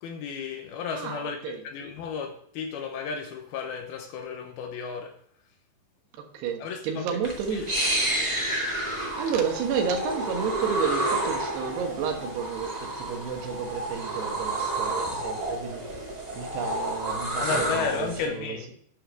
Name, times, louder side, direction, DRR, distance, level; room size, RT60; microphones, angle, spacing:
voice 1, 0.0-5.2 6.6-7.1 7.5-7.8 17.4-18.7, left 6 dB, 75° left, 2.6 m, -33 dB
voice 2, 1.0-1.6 6.2-7.8 9.1-16.1 16.3-18.6, right 6 dB, 75° right, 3.4 m, -31 dB
sound 1, 7.2-18.2, right 1 dB, 60° right, 0.4 m, -30 dB
10.0 x 5.8 x 6.3 m
omnidirectional pair, 4.9 m